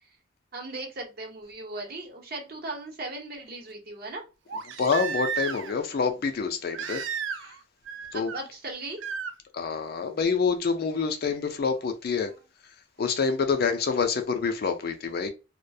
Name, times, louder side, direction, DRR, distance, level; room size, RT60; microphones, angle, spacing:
voice 1, 0.5-4.2 8.1-9.0, right 2 dB, 50° right, 0.8 m, -37 dB
Crying sobbing, 1.8-1.9 4.5-5.8 6.7-7.6 7.9-8.4 9.0-9.3 10.9-11.0, right 7 dB, 65° right, 0.3 m, -33 dB
voice 2, 4.8-7.0 8.1-8.3 9.5-12.3 13.0-15.3, left 5 dB, 50° left, 0.4 m, -27 dB
2.3 x 2.1 x 2.6 m
head